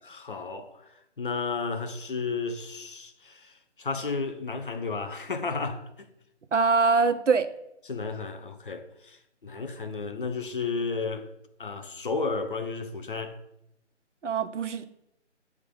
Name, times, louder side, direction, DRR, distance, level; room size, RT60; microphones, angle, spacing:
voice 1, 0.0-0.7 1.2-6.1 7.9-9.2 9.4-11.3 11.6-13.4, left 4 dB, 45° left, 0.8 m, -33 dB
voice 2, 6.5-7.5 14.2-14.8, right 4 dB, 80° right, 0.8 m, -23 dB
8.0 x 3.6 x 5.5 m
figure-of-eight pair, 165°, 36 cm